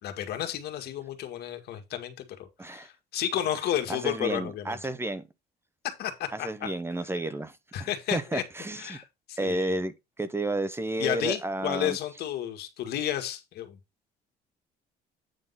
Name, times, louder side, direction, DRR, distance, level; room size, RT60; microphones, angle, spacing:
voice 1, 0.0-2.1 2.6-4.8 6.0-6.7 7.7-8.4 8.8-9.8 11.0-13.8, left 11 dB, 70° left, 1.9 m, -32 dB
voice 2, 3.9-5.2 6.3-7.6 8.1-9.0 9.4-12.0, right 2 dB, 15° right, 0.9 m, -31 dB
9.0 x 3.8 x 5.6 m
cardioid pair, 110°, 17 cm